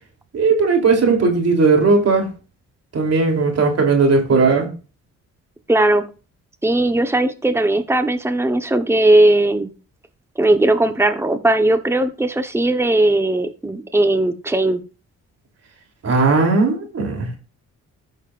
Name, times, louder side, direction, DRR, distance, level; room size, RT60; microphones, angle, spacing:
voice 1, 0.3-2.3 2.9-4.7 16.0-17.3, right 4 dB, 55° right, 2 dB, 3.3 m, -17 dB
voice 2, 5.7-6.0 6.6-9.7 10.4-14.8, right 1 dB, 10° right, 8 dB, 1.1 m, -17 dB
14.5 x 6.6 x 2.5 m, 0.35 s
cardioid pair, 75°, 30 cm